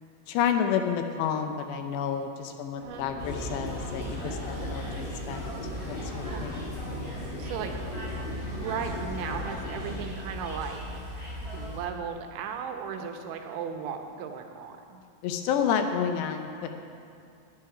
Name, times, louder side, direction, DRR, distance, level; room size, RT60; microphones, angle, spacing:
voice 1, 0.3-5.5 5.9-6.6 15.2-16.7, left 8 dB, 80° left, 6 dB, 2.7 m, -30 dB
sound 1, 2.7-10.0, left 1 dB, 30° left, 2.4 m, -38 dB
sound 2, 3.2-11.8, equal, 15° right, 4.1 m, -38 dB
voice 2, 7.4-7.8 8.1-10.8 11.5-15.0, right 7 dB, 85° right, 4 dB, 3.4 m, -36 dB
19.5 x 9.7 x 4.9 m, 2.4 s
omnidirectional pair, 5.2 m